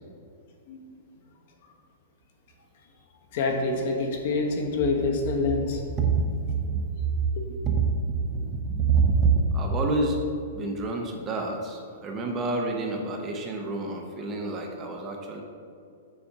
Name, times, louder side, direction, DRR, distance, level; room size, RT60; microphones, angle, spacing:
voice 1, 3.3-5.8 7.4-7.6, left 3 dB, 45° left, 2 dB, 1.1 m, -26 dB
voice 2, 6.0-6.8 7.6-8.0 8.3-10.2 10.5-15.4, right 4 dB, 20° right, 2 dB, 0.7 m, -26 dB
7.1 x 4.1 x 6.7 m, 2.4 s
supercardioid pair, 170°, 0 cm